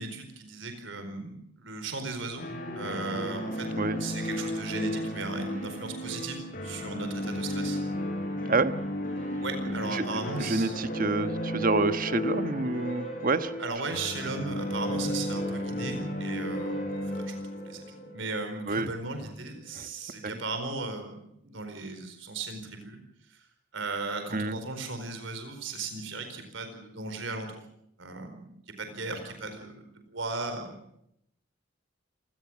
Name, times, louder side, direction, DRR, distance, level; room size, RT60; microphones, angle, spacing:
voice 1, 0.0-3.7 4.0-7.8 9.4-10.8 13.6-23.0 23.3-23.5 23.7-27.6 28.0-30.8, right 3 dB, 75° right, 7 dB, 4.5 m, -36 dB
sound 1, 2.4-19.1, left 1 dB, 45° left, 6.5 m, -34 dB
voice 2, 10.4-13.5 18.7-18.9 19.7-19.9 20.2-20.4 24.3-24.6, right 3 dB, 45° right, 11 dB, 1.3 m, -28 dB
28.0 x 19.5 x 6.3 m, 0.77 s
head